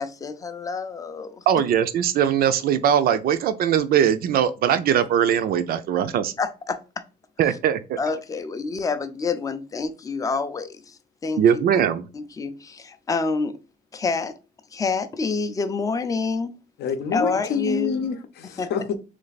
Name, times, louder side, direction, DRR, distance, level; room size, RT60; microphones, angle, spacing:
voice 1, 0.0-1.4 6.4-6.8 8.0-11.4 11.7-11.8 12.1-13.6 13.9-14.4 14.7-16.5 17.1-18.0 18.6-18.7, left 4 dB, 20° left, 0.4 m, -27 dB
voice 2, 1.5-6.3 7.4-8.0 11.4-12.1, right 9 dB, 60° right, 0.4 m, -20 dB
voice 3, 16.8-19.0, left 6 dB, 70° left, 0.6 m, -27 dB
3.3 x 3.3 x 3.9 m
cardioid pair, 165°, 18 cm